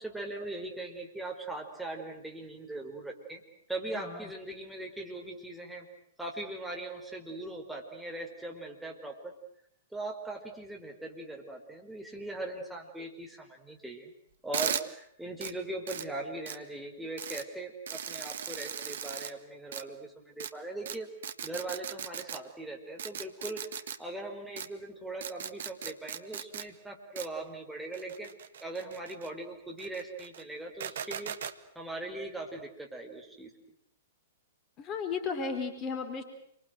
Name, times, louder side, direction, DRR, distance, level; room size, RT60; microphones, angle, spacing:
voice 1, 0.0-3.4 3.7-5.9 6.2-9.3 9.9-14.1 14.4-21.1 21.4-28.3 28.6-31.3 31.7-33.5, right 2 dB, 5° right, 0 dB, 4.7 m, -40 dB
voice 2, 3.9-4.3 34.8-36.2, left 5 dB, 25° left, 6 dB, 4.3 m, -34 dB
sound 1, 14.5-14.8 15.4-15.5 15.9-16.1 16.5-16.6 17.2-17.4 17.9-19.3 19.7-19.8 20.4-20.5 20.9-21.0 21.2-22.4 23.0-24.0 24.6-24.7 25.2-26.6 27.2-27.3 27.9-29.3 29.8-30.4 30.8-31.5, right 8 dB, 60° right, 1.6 m, -37 dB
29.0 x 25.5 x 8.0 m, 0.72 s
figure-of-eight pair, 110°, 0 cm